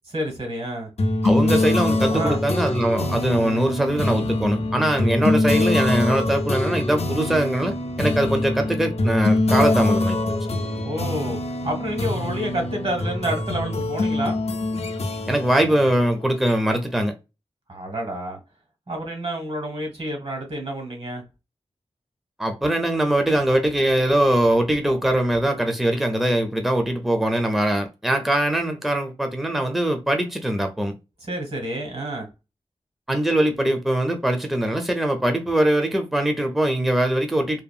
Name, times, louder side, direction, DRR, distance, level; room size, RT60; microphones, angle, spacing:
voice 1, 0.1-0.9 2.1-2.4 8.0-8.1 10.8-11.4 11.6-14.4 17.7-18.4 18.9-21.2 31.3-32.3, right 1 dB, 65° right, 1.5 m, -29 dB
sound 1, 1.0-16.9, left 2 dB, 70° left, 0.5 m, -24 dB
voice 2, 1.2-10.2 15.3-17.1 22.4-30.9 33.1-37.6, right 1 dB, ahead, 0.5 m, -22 dB
2.7 x 2.5 x 2.3 m
wide cardioid pair, 70°, 11 cm